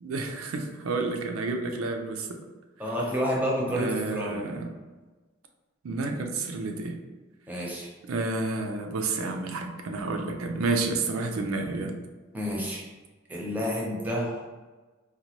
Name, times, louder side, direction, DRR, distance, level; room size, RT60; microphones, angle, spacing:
voice 1, 0.0-2.4 3.7-4.7 5.8-7.0 8.1-12.0, right 3 dB, 90° right, 4 dB, 0.5 m, -30 dB
voice 2, 2.8-4.4 7.5-7.9 12.3-12.8 13.3-14.4, equal, 10° right, -3 dB, 0.6 m, -29 dB
4.0 x 2.2 x 2.9 m, 1.3 s
head